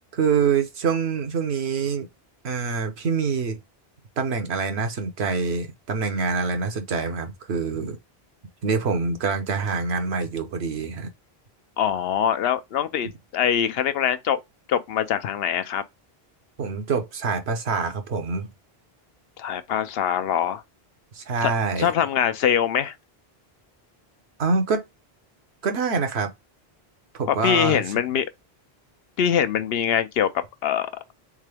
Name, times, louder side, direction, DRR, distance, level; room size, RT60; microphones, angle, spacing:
voice 1, 0.1-2.1 2.4-3.6 4.2-8.0 8.6-11.1 16.6-18.5 21.1-21.9 24.4-24.8 25.6-26.3 27.1-27.8, right 5 dB, 90° right, 1.2 m, -25 dB
voice 2, 11.8-14.4 14.7-15.8 19.4-20.6 21.4-21.5 21.8-22.9 27.3-28.3 29.2-30.3 30.6-31.0, left 9 dB, 75° left, 0.8 m, -23 dB
3.7 x 3.7 x 3.3 m
omnidirectional pair, 1.1 m